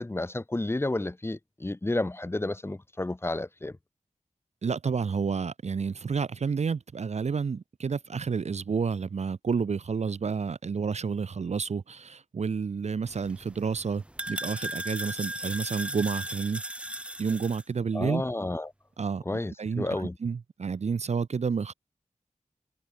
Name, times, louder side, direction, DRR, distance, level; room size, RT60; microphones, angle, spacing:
voice 1, 0.0-3.8 17.9-18.7 19.3-20.2, left 2 dB, 20° left, 0.9 m, -31 dB
voice 2, 4.6-16.6 17.2-18.2 19.0-19.2 19.6-21.7, right 5 dB, 60° right, 0.6 m, -30 dB
sound 1, 13.1-17.6, right 1 dB, 10° right, 1.1 m, -37 dB
wide cardioid pair, 80°, 13 cm